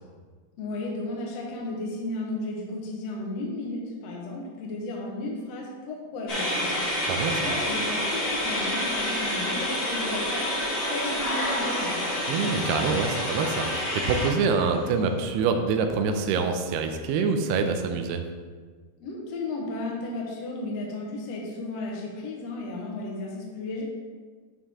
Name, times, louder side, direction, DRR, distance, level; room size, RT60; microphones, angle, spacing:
voice 1, 0.6-7.1 7.4-10.5 10.8-12.2 19.0-23.8, left 2 dB, 65° left, -2 dB, 1.6 m, -34 dB
sound 1, 6.3-14.9, left 1 dB, 45° left, 1.4 m, -28 dB
voice 2, 7.1-7.4 12.3-18.2, right 5 dB, 80° right, 5 dB, 2.6 m, -26 dB
11.5 x 4.6 x 3.6 m, 1.5 s
omnidirectional pair, 4.8 m